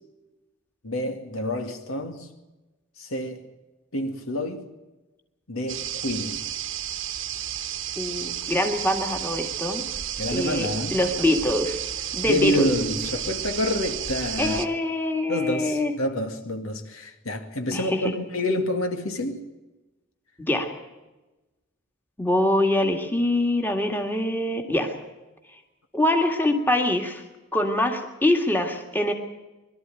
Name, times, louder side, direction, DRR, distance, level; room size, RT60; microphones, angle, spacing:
voice 1, 0.8-2.3 3.0-3.4 3.9-4.6 5.5-6.4 10.2-11.0 12.3-14.6 15.3-19.4, left 1 dB, 80° left, 2.3 m, -28 dB
sound 1, 5.7-14.7, right 10 dB, 60° right, 1.2 m, -32 dB
voice 2, 8.0-9.8 10.3-11.8 12.1-12.7 14.4-15.9 17.7-18.1 20.5-20.7 22.2-24.9 25.9-27.2 27.5-29.1, left 1 dB, 10° left, 2.0 m, -24 dB
22.5 x 13.0 x 9.2 m
head